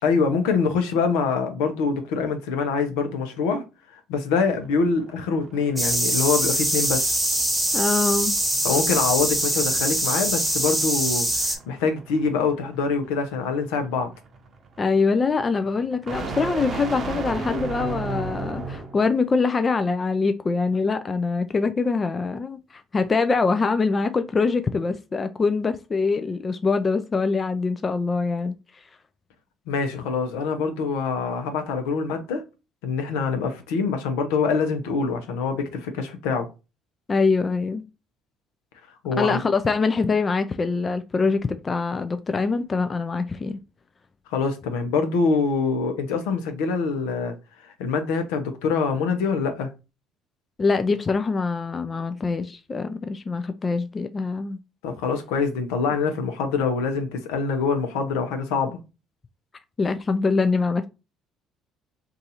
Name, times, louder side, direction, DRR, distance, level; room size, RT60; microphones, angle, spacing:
voice 1, 0.0-3.6 4.1-7.2 8.6-14.1 29.7-32.4 32.8-36.5 39.0-39.4 44.3-47.3 47.6-49.7 54.8-58.8, left 5 dB, 80° left, 0.7 m, -25 dB
sound 1, 4.5-19.1, right 4 dB, 45° right, 0.6 m, -36 dB
sound 2, 5.8-11.6, right 1 dB, 10° right, 1.1 m, -23 dB
voice 2, 7.7-8.4 14.8-28.5 37.1-37.8 39.2-43.6 50.6-54.6 59.8-60.9, left 4 dB, 35° left, 0.3 m, -24 dB
2.7 x 2.4 x 4.0 m
hypercardioid pair, 65°, 0 cm